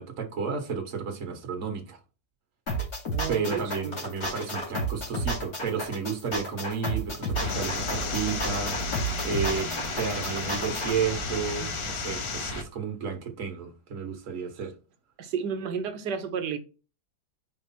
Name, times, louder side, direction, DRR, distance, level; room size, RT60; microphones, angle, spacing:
voice 1, 0.0-2.0 3.3-8.8 9.2-14.7, right 6 dB, 45° right, 1.7 m, -32 dB
sound 1, 2.7-10.9, right 1 dB, 50° left, 2.9 m, -32 dB
voice 2, 3.1-4.0 15.2-16.6, right 7 dB, 65° right, 1.3 m, -32 dB
sound 2, 7.3-12.6, left 1 dB, 30° left, 0.5 m, -33 dB
sound 3, 7.5-12.5, left 12 dB, 80° left, 1.3 m, -38 dB
5.1 x 5.0 x 4.3 m
omnidirectional pair, 2.1 m